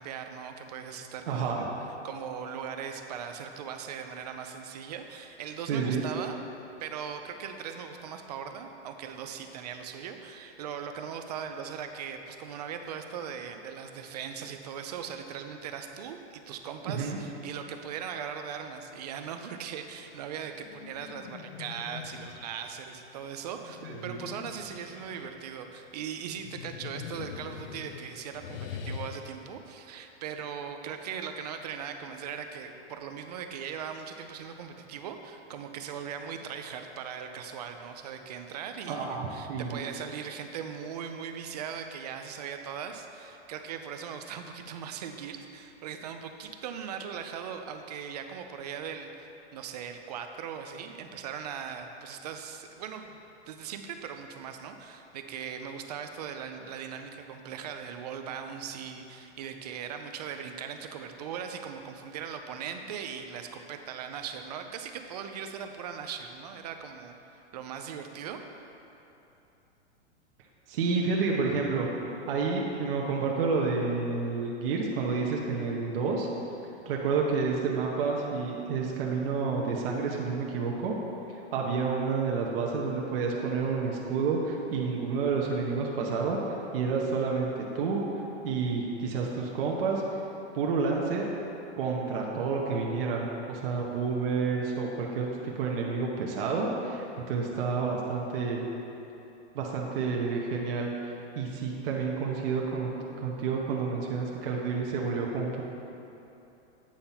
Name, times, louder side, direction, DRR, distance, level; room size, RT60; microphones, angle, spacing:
voice 1, 0.0-1.7 2.0-6.4 6.8-53.2 53.5-68.4, right 7 dB, 35° right, 6 dB, 0.4 m, -39 dB
voice 2, 1.3-1.7 5.7-6.0 16.9-17.2 23.8-24.2 38.9-39.8 70.7-71.9 72.3-76.3 76.9-80.9 81.3-88.0 88.4-90.2 90.5-91.3 91.8-98.7 99.5-102.9 103.2-105.6, right 4 dB, 55° right, -2 dB, 1.0 m, -29 dB
sound 1, 20.4-22.7 23.6-25.5 26.3-29.2, left 7 dB, 55° left, 0.6 m, -43 dB
8.8 x 4.3 x 5.7 m, 3.0 s
supercardioid pair, 165°, 35 cm